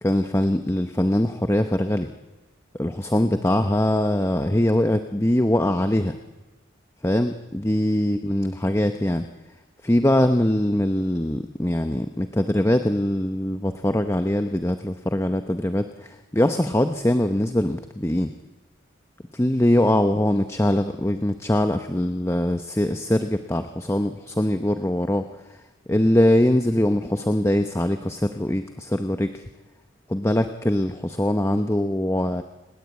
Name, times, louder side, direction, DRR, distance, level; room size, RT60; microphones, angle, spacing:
voice 1, 0.0-2.1 2.7-6.2 7.0-9.2 9.8-18.3 19.3-25.6 25.9-29.4 30.1-32.4, left 1 dB, 15° left, 8 dB, 0.8 m, -22 dB
29.5 x 20.5 x 8.3 m, 1.1 s
head